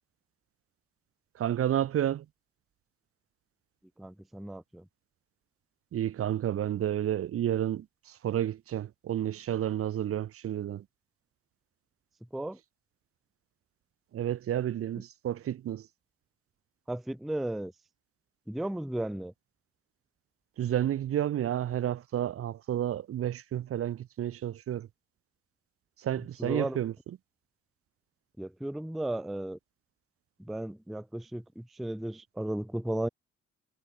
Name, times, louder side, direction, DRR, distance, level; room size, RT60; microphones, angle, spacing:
voice 1, 1.4-2.3 5.9-10.8 14.1-15.9 20.6-24.9 26.0-27.2, right 11 dB, 50° right, 0.6 m, -31 dB
voice 2, 4.0-4.8 12.3-12.6 16.9-17.7 18.5-19.3 26.4-26.8 28.4-29.6 30.5-33.1, right 1 dB, ahead, 0.4 m, -35 dB
cardioid pair, 90°, 30 cm